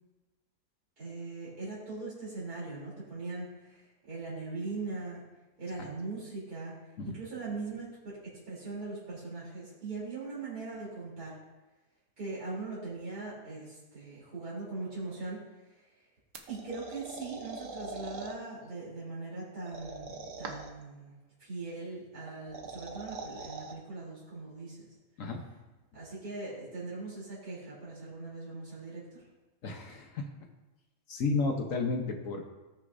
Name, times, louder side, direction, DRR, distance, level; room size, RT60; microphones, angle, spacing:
voice 1, 1.0-5.2 5.6-6.7 7.0-11.3 12.2-15.8 16.5-21.1 21.4-24.8 25.9-29.2, right 3 dB, 85° right, -8 dB, 3.9 m, -40 dB
sound 1, 16.3-18.3 19.7-20.8 22.3-23.7, right 3 dB, 60° right, 1.3 m, -42 dB
voice 2, 29.6-30.3 31.1-32.5, left 3 dB, 65° left, 3 dB, 1.3 m, -32 dB
18.5 x 6.4 x 2.6 m, 1.1 s
omnidirectional pair, 1.6 m